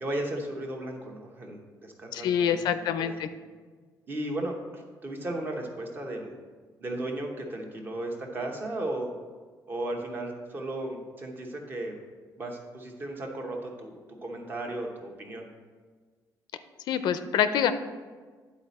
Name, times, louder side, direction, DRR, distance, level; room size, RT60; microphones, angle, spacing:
voice 1, 0.0-2.6 3.0-3.2 4.1-6.3 6.8-9.1 9.7-12.0 12.4-15.5, right 1 dB, 30° right, 2 dB, 0.9 m, -35 dB
voice 2, 2.1-3.3 16.9-17.7, left 8 dB, 90° left, 11 dB, 0.4 m, -26 dB
9.8 x 4.1 x 4.1 m, 1.5 s
cardioid pair, 170°, 7 cm